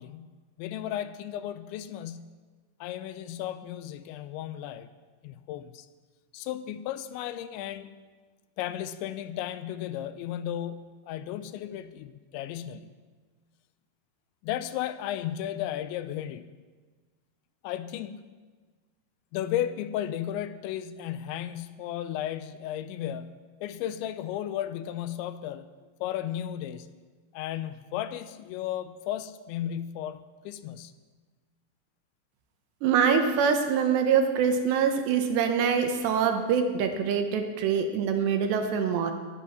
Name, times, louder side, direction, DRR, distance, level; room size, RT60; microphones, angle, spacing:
voice 1, 0.0-2.4 2.8-4.9 5.2-5.9 6.3-7.9 8.6-12.9 14.4-16.5 17.6-18.2 19.3-25.7 26.0-26.9 27.3-30.9, left 11 dB, 85° left, 12 dB, 2.9 m, -34 dB
voice 2, 32.8-39.1, right 6 dB, 75° right, 6 dB, 3.1 m, -24 dB
14.0 x 11.5 x 5.8 m, 1.4 s
omnidirectional pair, 5.3 m